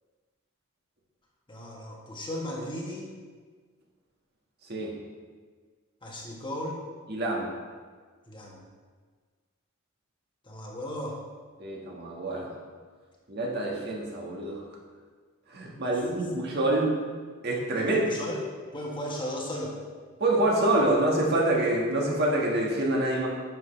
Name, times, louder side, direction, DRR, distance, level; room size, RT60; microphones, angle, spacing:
voice 1, 1.5-3.1 6.0-6.8 8.3-8.6 10.4-11.2 15.8-15.9 16.4-16.6 17.7-18.5 18.7-19.8, left 1 dB, 25° left, -2 dB, 1.3 m, -36 dB
voice 2, 7.1-7.5 11.6-12.5 13.3-14.6 15.5-17.0 17.4-18.0 20.2-23.3, right 1 dB, 50° right, -2 dB, 1.6 m, -26 dB
10.5 x 6.3 x 3.3 m, 1.5 s
head